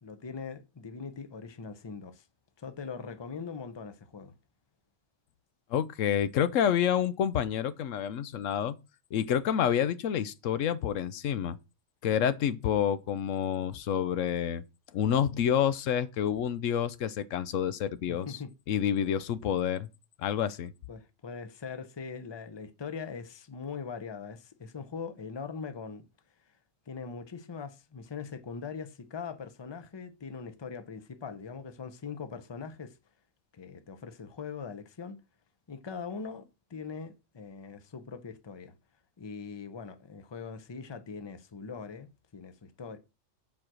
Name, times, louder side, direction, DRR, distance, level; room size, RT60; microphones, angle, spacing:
voice 1, 0.0-2.3 2.6-4.3 18.1-18.5 20.9-26.1 26.9-33.0 33.5-35.2 35.7-38.7 39.2-42.1 42.3-43.0, left 5 dB, 25° left, 0.7 m, -41 dB
voice 2, 5.7-8.8 9.1-11.6 12.0-14.6 14.9-18.4 18.7-19.9 20.2-20.7, left 9 dB, 80° left, 1.0 m, -28 dB
7.5 x 4.5 x 6.1 m
omnidirectional pair, 1.3 m